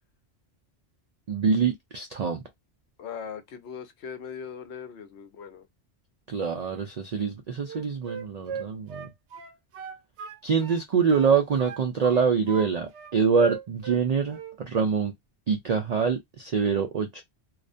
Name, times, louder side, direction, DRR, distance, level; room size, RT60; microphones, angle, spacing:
voice 1, 1.3-2.4 6.3-9.1 10.4-15.1 15.5-17.2, right 6 dB, 65° right, 0.4 m, -25 dB
voice 2, 3.0-5.7, left 7 dB, 75° left, 0.9 m, -39 dB
Wind instrument woodwind instrument, 7.6-10.8 11.1-12.7 12.9-14.0 14.3-14.6, right 6 dB, 80° right, 0.9 m, -38 dB
2.4 x 2.1 x 2.4 m
omnidirectional pair, 1.2 m